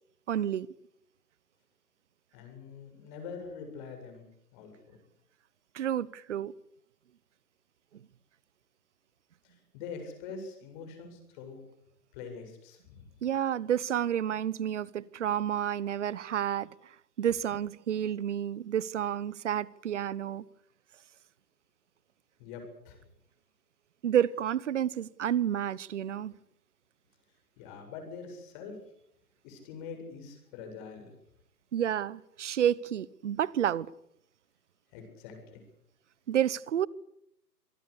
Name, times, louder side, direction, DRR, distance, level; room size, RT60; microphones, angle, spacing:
voice 1, 0.3-0.7 5.7-6.5 13.2-16.7 17.2-20.4 24.0-26.3 31.7-33.9 36.3-36.9, right 10 dB, 45° right, 1.1 m, -30 dB
voice 2, 2.3-4.2 4.5-5.0 9.4-11.6 12.1-13.1 22.4-23.0 27.6-28.8 29.4-31.1 34.9-35.6, left 5 dB, 30° left, 7.7 m, -44 dB
26.5 x 18.5 x 8.5 m
figure-of-eight pair, 135°, 49 cm